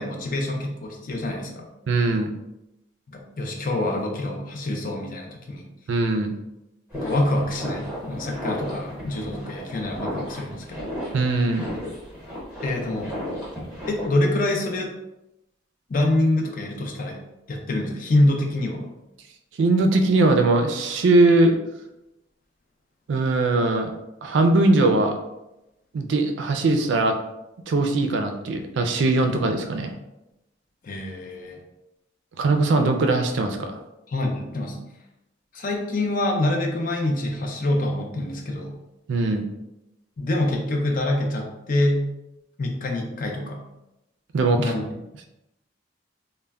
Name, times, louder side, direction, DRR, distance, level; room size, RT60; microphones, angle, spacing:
voice 1, 0.0-1.7 3.1-5.7 6.9-10.9 12.6-13.2 13.9-14.9 15.9-17.2 17.5-18.9 30.8-31.6 34.1-34.8 35.5-38.7 40.2-42.0 42.6-43.6 44.6-44.8, left 1 dB, 45° left, 1 dB, 0.5 m, -26 dB
voice 2, 1.9-2.3 5.9-6.3 11.1-11.7 19.6-21.6 23.1-23.9 24.2-25.2 25.9-27.2 27.7-29.9 32.4-33.8 39.1-39.5 44.3-44.7, right 2 dB, 70° right, 5 dB, 0.4 m, -20 dB
sound 1, 6.9-14.1, equal, 5° right, 0.9 m, -34 dB
2.1 x 2.1 x 3.4 m, 0.91 s
head